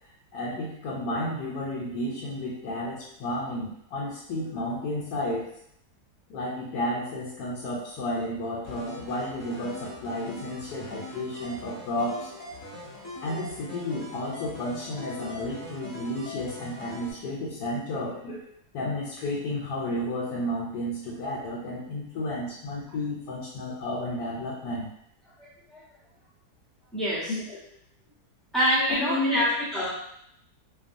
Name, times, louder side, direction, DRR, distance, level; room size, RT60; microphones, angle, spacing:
voice 1, 0.3-5.5 6.3-12.3 13.2-18.4 18.7-24.9 27.3-27.6 28.9-29.5 29.8-29.9, left 1 dB, 90° left, -5 dB, 1.2 m, -32 dB
sound 1, 8.6-17.1, left 2 dB, 30° left, 0.9 m, -41 dB
voice 2, 25.4-25.8 26.9-27.4 28.5-29.9, equal, ahead, -10 dB, 0.5 m, -26 dB
2.7 x 2.3 x 2.5 m, 0.72 s
omnidirectional pair, 1.8 m